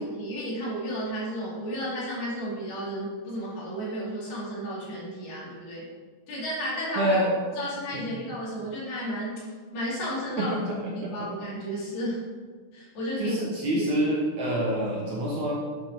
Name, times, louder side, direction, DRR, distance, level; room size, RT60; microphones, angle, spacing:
voice 1, 0.0-5.8 6.3-7.2 7.6-9.5 9.7-10.6 11.0-12.2 12.7-13.4 13.7-13.9, equal, 70° left, -6 dB, 4.3 m, -33 dB
voice 2, 7.0-7.3 7.9-8.0 10.4-11.3 13.2-15.5, right 1 dB, 65° right, -4 dB, 2.0 m, -27 dB
8.3 x 5.2 x 5.9 m, 1.5 s
omnidirectional pair, 4.6 m